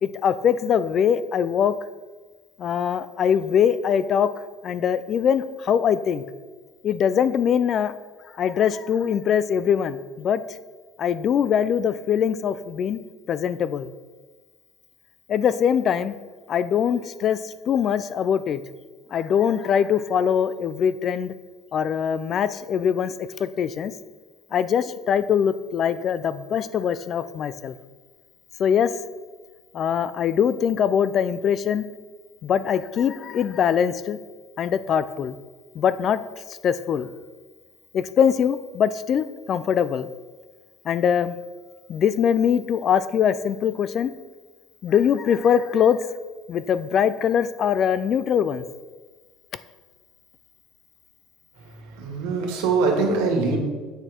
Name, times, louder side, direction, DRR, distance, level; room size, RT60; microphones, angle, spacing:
voice 1, 0.0-1.7 2.6-4.3 4.6-6.2 6.8-8.0 8.4-10.4 11.0-13.0 13.3-13.9 15.3-16.2 16.5-18.6 19.1-21.3 21.7-23.9 24.5-27.7 28.6-28.9 29.7-31.8 32.4-34.2 34.6-35.4 35.8-36.2 36.6-37.1 37.9-40.1 40.9-41.4 41.9-44.1 44.8-46.0 46.5-48.6, left 8 dB, 35° left, 14 dB, 0.3 m, -22 dB
voice 2, 52.0-53.6, right 4 dB, 85° right, 2 dB, 2.0 m, -22 dB
8.1 x 6.5 x 4.4 m, 1.4 s
cardioid pair, 160°, 0 cm